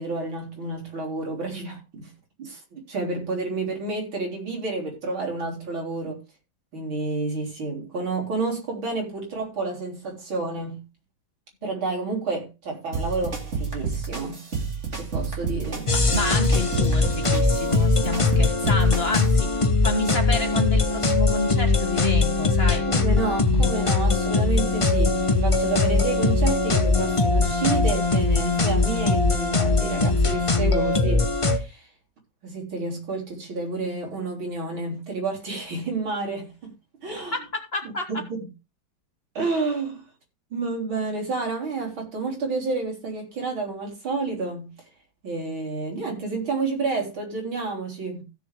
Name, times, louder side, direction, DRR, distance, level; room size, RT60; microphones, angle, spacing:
voice 1, 0.0-2.1 2.4-6.2 6.7-10.8 11.6-14.5 15.0-15.9 22.9-31.9 32.4-36.7 37.0-37.3 37.8-38.5 39.3-40.1 40.5-44.7 45.2-48.2, right 3 dB, 85° right, 4.5 m, -30 dB
sound 1, 12.9-19.3, right 5 dB, 35° right, 2.5 m, -30 dB
sound 2, 15.9-31.6, left 3 dB, 60° left, 0.3 m, -21 dB
voice 2, 15.9-19.5 19.8-22.8 23.5-23.7 37.2-38.2, left 3 dB, 35° left, 1.6 m, -29 dB
16.0 x 6.7 x 3.4 m
omnidirectional pair, 2.2 m